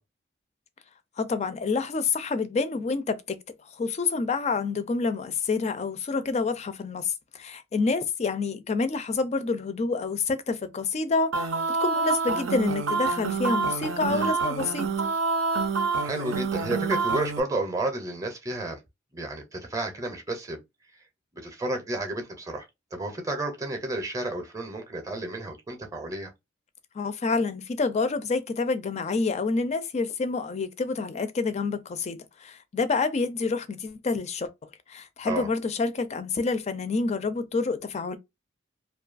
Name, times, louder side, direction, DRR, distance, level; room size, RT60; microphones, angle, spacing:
voice 1, 1.2-3.4 3.8-11.5 11.8-14.9 27.0-34.5 34.9-38.2, left 4 dB, 35° left, 0.4 m, -28 dB
sound 1, 11.3-17.4, right 4 dB, 85° right, 0.5 m, -27 dB
voice 2, 16.0-18.8 19.1-20.6 21.4-26.3 35.2-35.5, right 2 dB, 15° right, 0.5 m, -32 dB
2.5 x 2.3 x 2.4 m
head